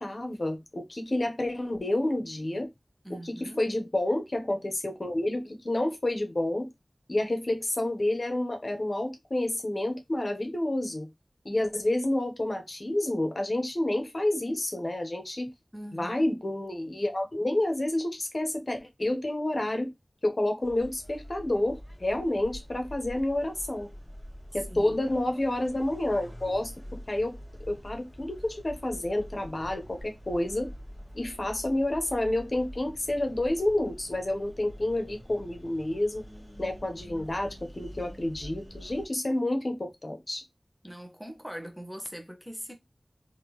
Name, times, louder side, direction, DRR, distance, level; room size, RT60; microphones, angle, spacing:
voice 1, 0.0-2.7 3.1-6.7 7.1-11.1 11.4-15.5 15.9-19.9 20.2-23.9 24.5-30.7 31.1-36.2 36.6-40.4, left 1 dB, 55° left, 0.8 m, -29 dB
voice 2, 3.0-3.6 15.7-16.3 24.5-25.2 40.8-42.7, equal, 5° right, 1.0 m, -42 dB
sound 1, 20.6-39.1, equal, 10° left, 1.7 m, -46 dB
3.3 x 2.6 x 3.0 m
wide cardioid pair, 50°, 0 cm